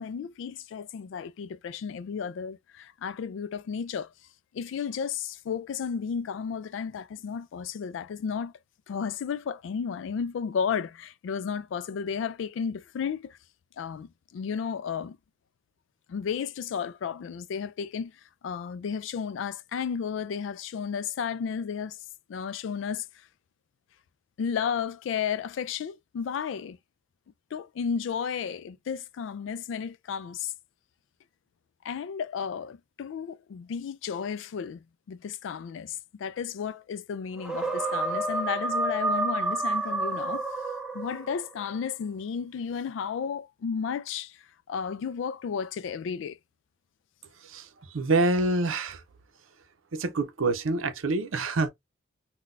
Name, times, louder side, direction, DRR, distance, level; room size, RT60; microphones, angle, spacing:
voice 1, 0.0-4.1 4.5-8.5 8.9-13.4 13.8-15.2 16.1-18.1 18.4-22.0 22.3-23.1 24.4-26.8 27.5-30.5 31.8-40.4 40.9-44.4 44.7-46.4, left 6 dB, 70° left, 0.3 m, -33 dB
sound 1, 37.4-41.5, right 2 dB, 5° right, 0.6 m, -29 dB
voice 2, 47.9-49.0 49.9-51.7, right 3 dB, 90° right, 0.6 m, -26 dB
3.8 x 2.2 x 2.5 m
head